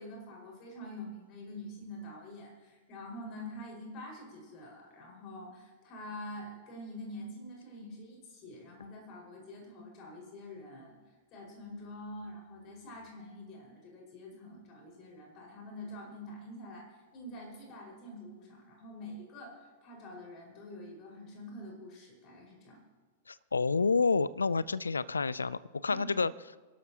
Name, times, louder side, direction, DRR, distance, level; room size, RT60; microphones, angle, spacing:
voice 1, 0.0-11.0 11.3-22.8 25.9-26.1, left 1 dB, 40° left, -1 dB, 5.4 m, -46 dB
voice 2, 23.3-26.6, left 4 dB, 80° left, 20 dB, 0.4 m, -29 dB
26.5 x 12.5 x 3.0 m, 1.4 s
figure-of-eight pair, 95°, 0 cm